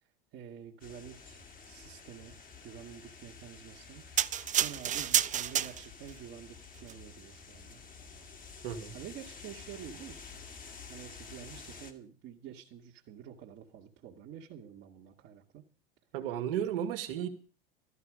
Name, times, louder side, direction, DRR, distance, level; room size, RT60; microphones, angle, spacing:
voice 1, 0.0-7.8 8.9-10.4 10.9-15.6 17.2-17.3, right 9 dB, 45° right, 2.1 m, -49 dB
sound 1, 0.8-11.9, left 5 dB, 30° left, 2.4 m, -50 dB
sound 2, 4.2-6.1 6.8-6.9, right 10 dB, 25° right, 0.6 m, -29 dB
voice 2, 8.6-9.0 16.1-17.3, right 10 dB, 70° right, 2.2 m, -34 dB
14.0 x 13.0 x 5.0 m
hypercardioid pair, 85°, 30 cm